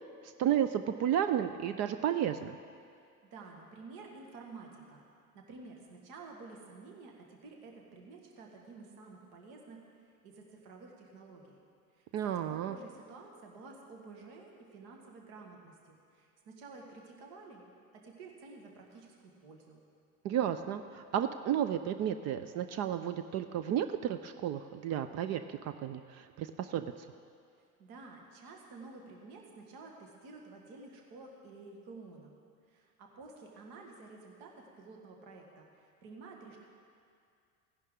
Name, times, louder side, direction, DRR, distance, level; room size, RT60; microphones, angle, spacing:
voice 1, 0.2-2.6 12.1-12.8 20.2-26.9, right 10 dB, 35° right, 10 dB, 0.4 m, -32 dB
voice 2, 3.2-5.0 5.3-11.6 11.9-17.6 17.9-19.8 27.8-32.3 32.7-36.6, right 3 dB, 55° right, 1 dB, 1.8 m, -51 dB
16.5 x 11.0 x 3.8 m, 2.3 s
figure-of-eight pair, 70°, 44 cm